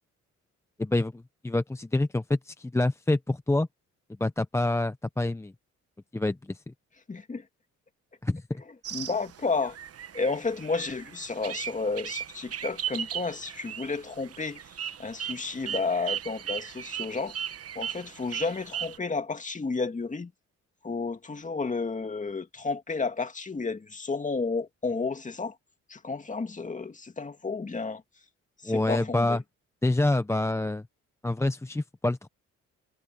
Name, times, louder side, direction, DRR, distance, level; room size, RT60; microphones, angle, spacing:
voice 1, 0.8-3.7 4.2-5.5 6.1-6.7 8.2-8.6 28.6-29.4 29.8-30.8 31.2-32.3, left 2 dB, 10° left, 0.7 m, -27 dB
voice 2, 7.1-7.4 8.9-9.8 10.1-14.6 15.0-17.3 17.8-20.3 20.8-25.6 25.9-28.0 28.6-29.4, left 4 dB, 25° left, 2.3 m, -31 dB
sound 1, 8.8-19.0, right 9 dB, 50° right, 1.1 m, -37 dB
cardioid pair, 90°, 30 cm